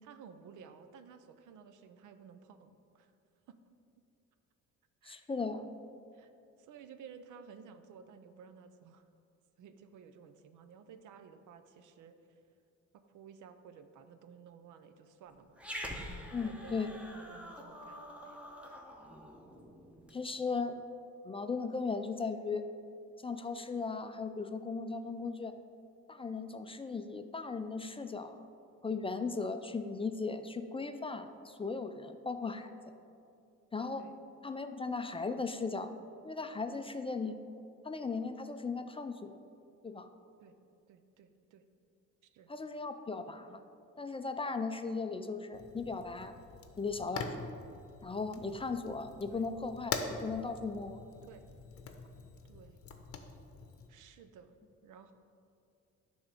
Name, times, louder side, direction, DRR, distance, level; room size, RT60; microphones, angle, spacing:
voice 1, 0.0-3.1 3.5-3.6 5.0-5.3 6.1-6.3 6.6-9.1 9.6-12.4 12.9-15.6 16.4-18.9 34.0-34.1 40.4-40.5 40.9-41.6 42.2-42.5 49.3-49.5 51.2-51.5 52.4-52.8 53.9-54.6 54.8-55.1, right 6 dB, 80° right, 9 dB, 0.6 m, -55 dB
voice 2, 5.1-5.7 16.3-16.9 20.1-20.8 21.2-22.6 23.2-25.5 26.1-28.5 28.8-32.7 33.7-34.0 34.4-35.9 36.2-37.3 37.8-39.3 39.8-40.1 42.5-43.6 44.0-46.3 46.8-47.5 48.0-51.0, left 4 dB, 20° left, 8 dB, 0.4 m, -37 dB
Growling, 15.6-20.2, equal, 5° right, 0.9 m, -46 dB
Fire, 45.5-53.9, left 5 dB, 50° left, 0.8 m, -44 dB
9.6 x 3.6 x 6.6 m, 2.6 s
cardioid pair, 90°, 30 cm